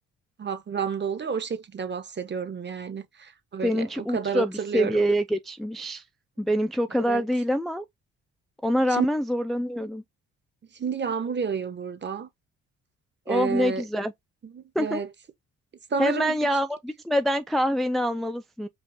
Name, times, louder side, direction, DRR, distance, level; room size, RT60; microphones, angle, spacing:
voice 1, 0.4-5.0 6.9-7.3 8.9-9.1 10.7-12.3 13.3-13.8 14.4-15.1 15.9-16.4, right 6 dB, 35° right, 1.1 m, -30 dB
voice 2, 3.6-6.0 6.4-7.8 8.6-10.0 13.3-14.1 14.8-15.0 16.0-18.7, equal, ahead, 0.4 m, -25 dB
5.3 x 2.4 x 3.6 m
cardioid pair, 90°, 30 cm